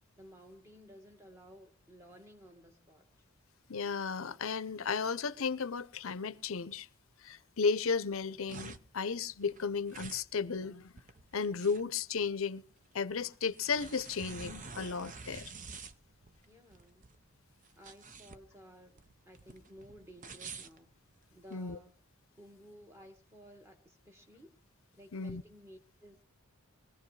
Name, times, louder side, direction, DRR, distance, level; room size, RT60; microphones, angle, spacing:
voice 1, 0.2-3.1 16.5-17.0 17.7-20.9 21.3-21.9 22.4-24.6 24.9-26.2, equal, 10° right, 1.7 m, -55 dB
voice 2, 3.7-6.9 7.2-10.9 11.3-12.6 12.9-15.4 21.5-21.8 25.1-25.4, left 5 dB, 70° left, 0.7 m, -34 dB
sound 1, 8.1-21.6, right 4 dB, 35° right, 0.7 m, -49 dB
21.5 x 15.5 x 3.3 m
head